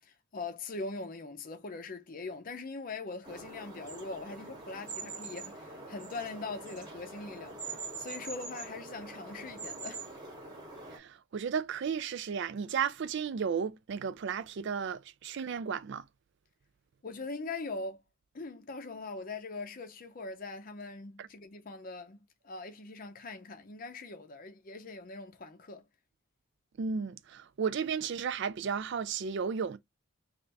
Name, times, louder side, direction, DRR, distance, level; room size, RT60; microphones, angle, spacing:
voice 1, 0.0-10.0 17.0-18.0 18.3-22.2 22.4-25.8, left 3 dB, 40° left, 0.5 m, -42 dB
sound 1, 3.2-11.0, right 3 dB, 20° right, 1.0 m, -44 dB
voice 2, 10.9-16.0 21.2-21.3 26.8-29.8, right 6 dB, 55° right, 0.3 m, -34 dB
3.4 x 2.5 x 3.9 m
head